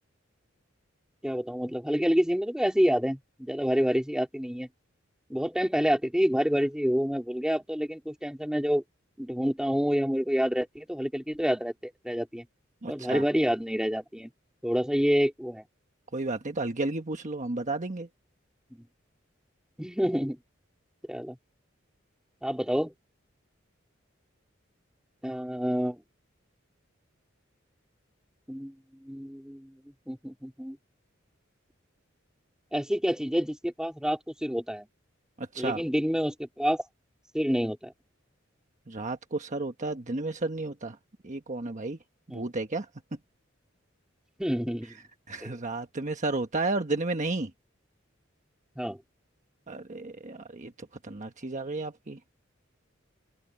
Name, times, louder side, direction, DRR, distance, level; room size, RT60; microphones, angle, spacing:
voice 1, 1.2-4.7 5.3-8.8 9.2-12.5 12.9-14.3 14.6-15.7 18.7-18.9 19.8-20.4 21.1-21.4 22.4-22.9 25.2-26.0 28.5-28.7 29.0-29.7 30.1-30.8 32.7-34.9 35.6-36.8 37.3-37.9 42.3-42.5 44.4-45.0 45.4-45.6 48.8-49.0, equal, 5° right, 3.8 m, -28 dB
voice 2, 12.8-13.2 16.1-18.1 35.4-35.8 38.9-41.0 41.2-42.0 42.3-42.9 45.3-47.5 49.7-50.7 51.0-52.2, right 2 dB, 40° right, 1.3 m, -32 dB
head